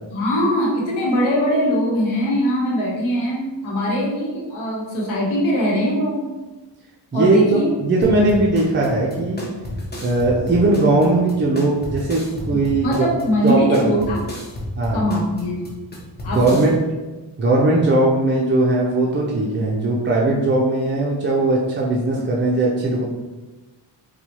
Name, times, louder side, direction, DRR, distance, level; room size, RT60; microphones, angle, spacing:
voice 1, 0.1-6.2 7.1-7.7 12.5-14.2 14.9-15.6 16.2-16.7, equal, 90° left, -4 dB, 1.1 m, -21 dB
voice 2, 7.1-9.5 10.0-13.1 13.4-13.8 14.8-15.1 16.3-16.8 17.4-23.0, right 2 dB, 25° right, -4 dB, 0.5 m, -19 dB
sound 1, 8.0-16.7, left 1 dB, 20° left, 0.8 m, -31 dB
4.2 x 2.3 x 2.8 m, 1.2 s
cardioid pair, 85°, 47 cm